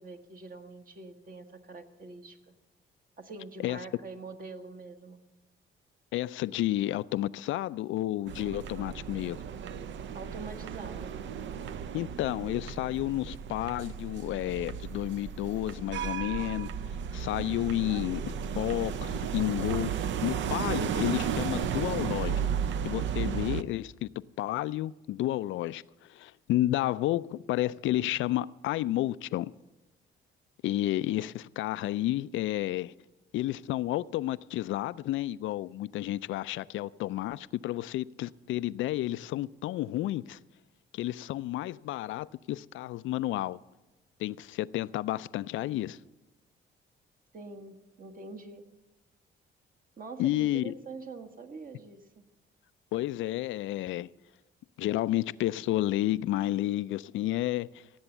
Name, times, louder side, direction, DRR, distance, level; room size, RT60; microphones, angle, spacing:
voice 1, 0.0-2.5 3.2-5.2 10.1-11.1 47.3-48.7 50.0-52.2, right 3 dB, 45° right, 1.4 m, -44 dB
voice 2, 6.1-9.4 11.9-16.7 17.1-19.9 20.2-22.5 22.8-24.1 24.4-29.5 30.6-32.9 33.3-40.4 40.9-43.6 44.2-46.0 50.2-50.7 52.9-54.1 54.8-57.7, left 15 dB, 80° left, 0.4 m, -31 dB
sound 1, 8.3-23.6, right 8 dB, 70° right, 0.6 m, -34 dB
17.0 x 7.9 x 7.2 m
cardioid pair, 90°, 20 cm